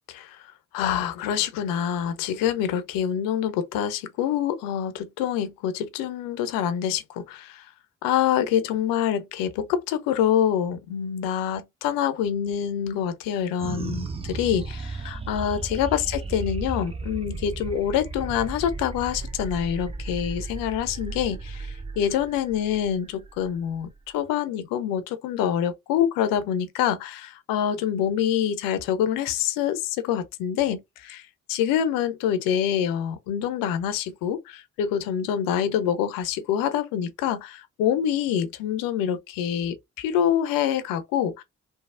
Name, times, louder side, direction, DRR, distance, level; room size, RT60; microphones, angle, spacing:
voice 1, 0.1-0.4 0.7-7.7 8.0-41.4, left 9 dB, 70° left, 0.6 m, -26 dB
sound 1, 13.6-24.3, right 3 dB, 15° right, 0.5 m, -35 dB
3.2 x 2.0 x 2.4 m
hypercardioid pair, 40°, 35 cm